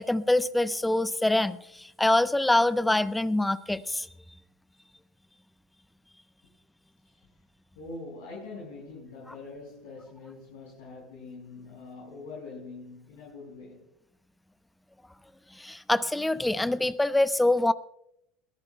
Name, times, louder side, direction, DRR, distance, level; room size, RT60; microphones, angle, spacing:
voice 1, 0.0-4.1 15.5-17.7, left 1 dB, 10° left, 0.8 m, -25 dB
voice 2, 7.8-13.9, left 3 dB, 80° left, 5.5 m, -43 dB
22.5 x 14.5 x 2.3 m
hypercardioid pair, 85°, 0 cm